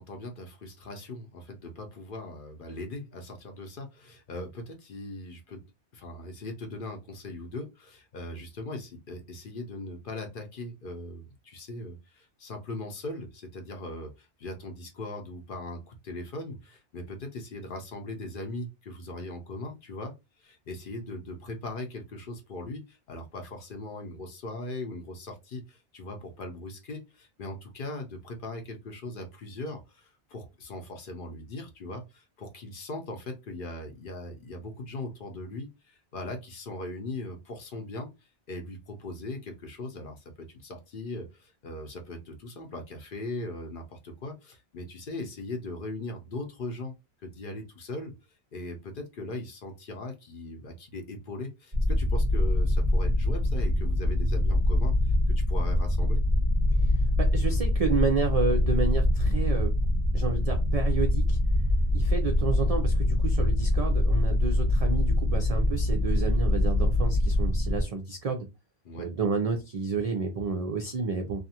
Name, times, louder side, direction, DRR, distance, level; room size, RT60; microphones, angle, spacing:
voice 1, 0.0-5.6 5.9-38.1 38.5-46.9 47.2-48.1 48.5-56.2 68.8-69.1, left 2 dB, 55° left, 4 dB, 0.7 m, -39 dB
sound 1, 51.7-67.8, left 1 dB, 30° right, 0.9 m, -24 dB
voice 2, 57.2-59.7 60.1-61.4 61.9-68.5 69.0-71.4, right 4 dB, 65° right, 4 dB, 0.3 m, -30 dB
2.5 x 2.4 x 2.7 m, 0.24 s
omnidirectional pair, 1.2 m